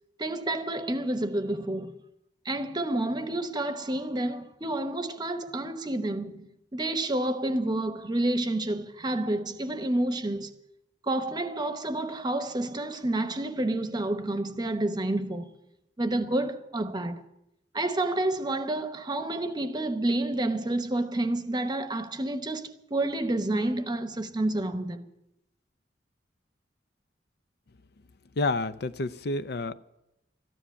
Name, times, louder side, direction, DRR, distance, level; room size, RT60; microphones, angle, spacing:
voice 1, 0.2-1.9 2.4-10.5 11.0-15.5 16.0-17.2 17.7-25.1, right 1 dB, 25° right, 0.9 m, -29 dB
voice 2, 28.4-29.7, left 2 dB, 60° left, 0.5 m, -29 dB
14.0 x 10.0 x 8.4 m
head